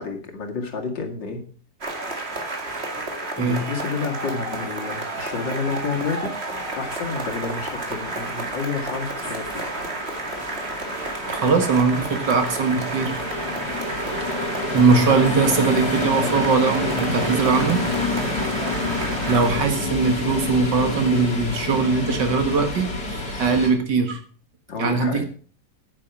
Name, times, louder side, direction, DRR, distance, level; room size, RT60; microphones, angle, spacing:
voice 1, 0.0-1.4 3.4-6.3 6.7-9.7 14.9-15.0 24.7-25.3, left 4 dB, 90° left, 2 dB, 2.8 m, -30 dB
sound 1, 1.8-19.6, right 2 dB, 35° right, 2.3 m, -31 dB
sound 2, 6.6-23.7, left 2 dB, 60° left, 4.0 m, -29 dB
voice 2, 11.3-13.2 14.7-17.8 19.3-24.2 24.8-25.3, right 4 dB, 75° right, 6 dB, 2.3 m, -21 dB
9.6 x 8.9 x 5.9 m, 0.42 s
omnidirectional pair, 1.9 m